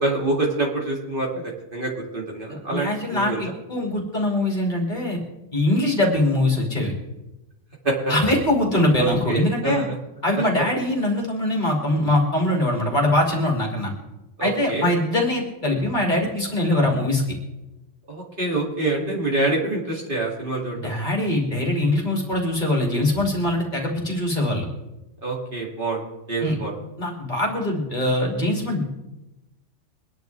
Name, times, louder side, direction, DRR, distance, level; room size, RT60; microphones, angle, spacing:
voice 1, 0.0-3.5 7.8-8.1 9.0-9.9 14.4-14.9 18.1-20.9 25.2-26.0 26.3-26.7, right 2 dB, 45° right, -3 dB, 2.9 m, -26 dB
voice 2, 2.7-5.2 5.5-6.9 8.1-9.8 10.2-13.9 14.4-17.2 20.7-24.7 26.4-26.6 27.0-28.8, left 1 dB, 40° left, -1 dB, 2.9 m, -22 dB
23.5 x 10.5 x 3.4 m, 1.0 s
omnidirectional pair, 1.3 m